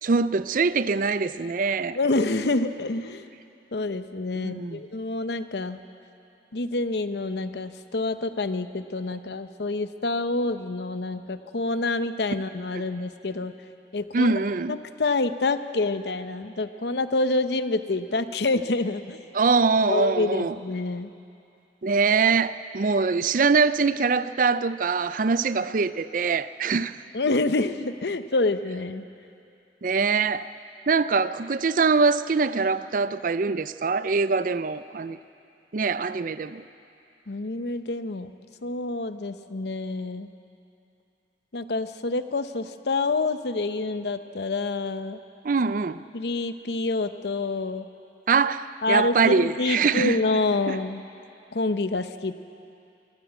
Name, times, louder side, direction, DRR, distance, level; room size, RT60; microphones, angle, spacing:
voice 1, 0.0-2.0 4.3-4.8 14.1-14.8 19.3-20.6 21.8-26.9 29.8-30.5 30.9-35.2 35.7-36.6 45.4-46.0 48.3-50.2 50.7-50.8, right 4 dB, 50° right, 0.5 m, -23 dB
voice 2, 1.9-3.3 3.7-5.8 6.5-13.5 13.9-14.3 14.7-19.2 19.9-21.1 27.1-29.0 37.3-38.3 38.6-40.3 41.5-45.2 46.1-47.9 48.8-51.0 51.5-52.3, left 3 dB, 70° left, 0.8 m, -27 dB
23.0 x 14.5 x 8.1 m
head